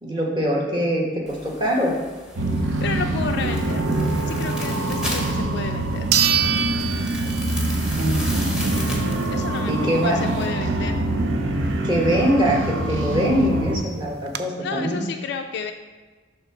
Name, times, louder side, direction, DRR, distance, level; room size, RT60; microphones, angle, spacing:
voice 1, 0.0-1.9 8.0-8.5 9.7-10.2 11.8-15.0, equal, 25° right, -2 dB, 1.2 m, -23 dB
sound 1, 1.3-10.4, left 1 dB, 5° right, 0.9 m, -36 dB
sound 2, 2.4-13.8, right 2 dB, 80° right, 0.7 m, -24 dB
voice 2, 2.6-3.9 4.3-6.1 8.7-11.0 14.6-15.7, left 5 dB, 55° left, 5 dB, 0.3 m, -32 dB
sound 3, 5.3-5.4 6.1-7.9 8.3-8.4 13.0-13.1 13.3-13.4 13.9-14.4, right 9 dB, 55° right, 0.4 m, -24 dB
6.6 x 3.5 x 5.8 m, 1.4 s
head